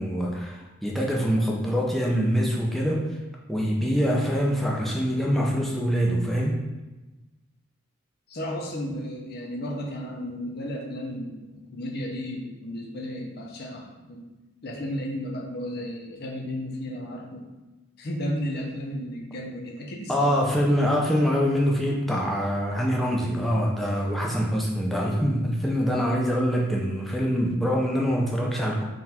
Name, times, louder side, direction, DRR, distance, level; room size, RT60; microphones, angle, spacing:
voice 1, 0.0-3.0 3.5-6.6 20.1-28.8, equal, ahead, -2 dB, 0.4 m, -24 dB
voice 2, 8.3-14.3 14.6-17.5 18.0-20.4, equal, 45° left, 0 dB, 0.6 m, -33 dB
3.9 x 2.5 x 4.2 m, 1.1 s
head